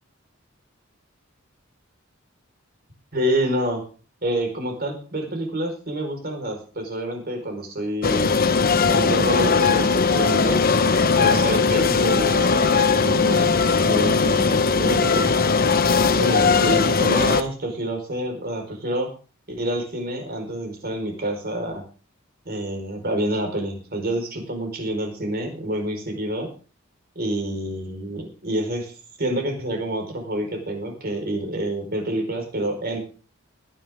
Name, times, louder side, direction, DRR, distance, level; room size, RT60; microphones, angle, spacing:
voice 1, 3.1-3.8 4.2-8.4 8.9-10.6 11.2-13.5 13.8-15.3 16.2-19.1 19.5-21.8 22.4-26.5 27.1-33.0, right 1 dB, 50° right, 4 dB, 4.8 m, -27 dB
sound 1, 8.0-17.4, left 4 dB, 45° left, 1.1 m, -19 dB
20.0 x 10.0 x 3.7 m, 0.36 s
head